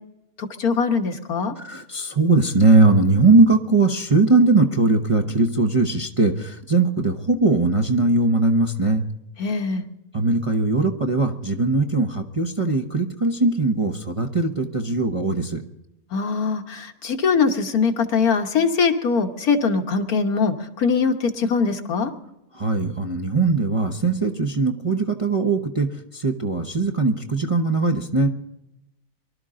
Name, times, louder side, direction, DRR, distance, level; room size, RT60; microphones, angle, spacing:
voice 1, 0.4-1.5 9.4-9.9 16.1-22.1, left 5 dB, 75° left, 4 dB, 1.7 m, -22 dB
voice 2, 1.6-9.1 10.1-15.6 22.5-28.3, right 3 dB, 25° right, 3 dB, 0.9 m, -20 dB
24.0 x 12.5 x 3.8 m, 0.88 s
omnidirectional pair, 1.6 m